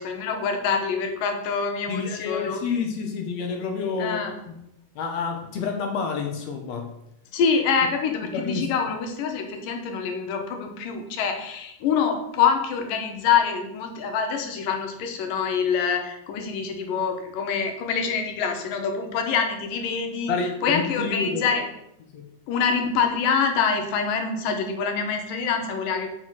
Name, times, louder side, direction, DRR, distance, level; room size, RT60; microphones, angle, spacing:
voice 1, 0.0-2.6 4.0-4.3 7.3-20.3 20.6-21.6 22.5-26.1, left 6 dB, 85° left, 4 dB, 2.8 m, -25 dB
voice 2, 1.9-4.6 4.9-6.9 8.3-8.7 20.3-21.4 22.1-22.3, left 5 dB, 70° left, 4 dB, 1.8 m, -29 dB
7.5 x 6.2 x 5.6 m, 0.83 s
omnidirectional pair, 3.8 m